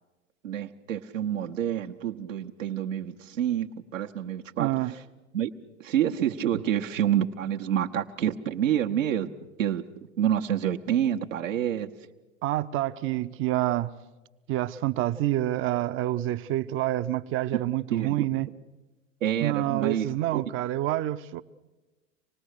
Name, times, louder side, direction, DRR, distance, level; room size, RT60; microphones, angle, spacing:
voice 1, 0.4-5.0 5.3-5.5 5.8-9.3 9.6-9.8 10.2-11.9 17.9-18.3 19.2-20.4, right 10 dB, 80° right, 1.1 m, -28 dB
voice 2, 4.6-4.9 12.4-13.9 14.5-18.5 19.4-21.4, right 14 dB, 35° right, 0.7 m, -27 dB
26.0 x 19.0 x 6.6 m
hypercardioid pair, 90°, 38 cm